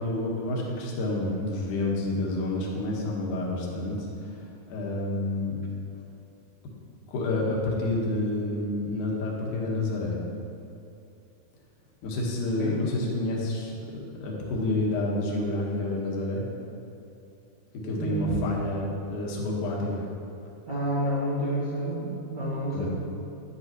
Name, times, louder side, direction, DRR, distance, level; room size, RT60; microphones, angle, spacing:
voice 1, 0.0-5.6 7.1-10.2 12.0-16.4 17.8-20.1 22.7-22.9, left 2 dB, 60° left, -3 dB, 2.5 m, -29 dB
voice 2, 17.8-18.3 20.6-22.9, right 1 dB, 55° right, -10 dB, 1.2 m, -29 dB
11.0 x 9.6 x 3.0 m, 2.8 s
omnidirectional pair, 4.5 m